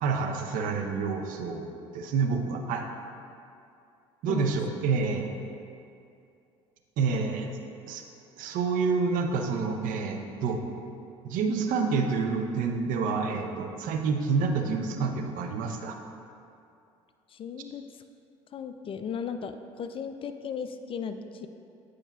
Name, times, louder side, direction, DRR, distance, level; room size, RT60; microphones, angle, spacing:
voice 1, 0.0-2.9 4.2-5.3 7.0-7.5 7.9-8.0 8.4-10.6 11.2-16.0, right 5 dB, 60° right, 4 dB, 0.6 m, -28 dB
voice 2, 4.3-4.6 17.3-18.0 18.5-21.5, left 6 dB, 35° left, 8 dB, 0.4 m, -36 dB
8.9 x 4.9 x 2.3 m, 2.6 s
hypercardioid pair, 60°, 16 cm